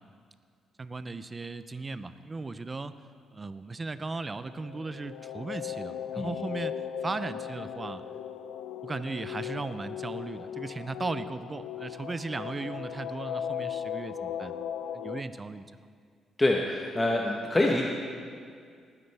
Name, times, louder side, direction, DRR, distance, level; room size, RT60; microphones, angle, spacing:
voice 1, 0.8-2.9 3.3-6.7 7.0-8.0 8.8-14.5 14.9-16.0, right 3 dB, 25° right, 12 dB, 0.5 m, -37 dB
sound 1, 4.5-15.2, left 9 dB, 85° left, 0.4 m, -37 dB
voice 2, 16.4-17.8, left 1 dB, 15° left, -1 dB, 1.1 m, -25 dB
19.0 x 9.7 x 3.4 m, 2.1 s
cardioid pair, 90°, 0 cm